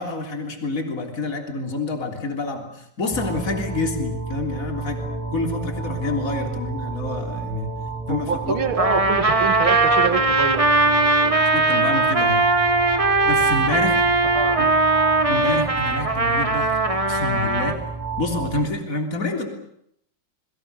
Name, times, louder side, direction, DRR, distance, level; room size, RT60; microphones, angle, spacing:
voice 1, 0.0-5.0 5.3-7.7 8.1-8.6 11.5-12.4 13.2-14.0 15.3-16.8 17.1-17.8 18.2-19.5, left 2 dB, 40° left, 3 dB, 3.7 m, -27 dB
sound 1, 3.1-18.6, right 4 dB, ahead, 5.9 m, -31 dB
voice 2, 8.1-11.4 14.3-14.7, right 6 dB, 70° right, 8 dB, 2.7 m, -27 dB
Trumpet, 8.8-17.8, right 3 dB, 20° right, 1.2 m, -19 dB
28.5 x 22.5 x 6.7 m, 0.71 s
omnidirectional pair, 2.4 m